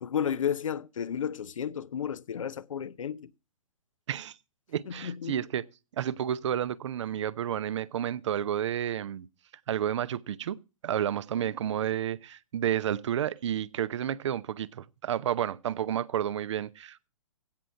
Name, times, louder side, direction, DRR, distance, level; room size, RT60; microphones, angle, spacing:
voice 1, 0.0-3.3 4.9-5.4, left 8 dB, 70° left, 0.7 m, -32 dB
voice 2, 4.7-5.6 5.9-9.3 9.7-10.6 10.8-17.1, right 10 dB, 55° right, 0.7 m, -31 dB
16.0 x 6.2 x 5.6 m
figure-of-eight pair, 120°, 18 cm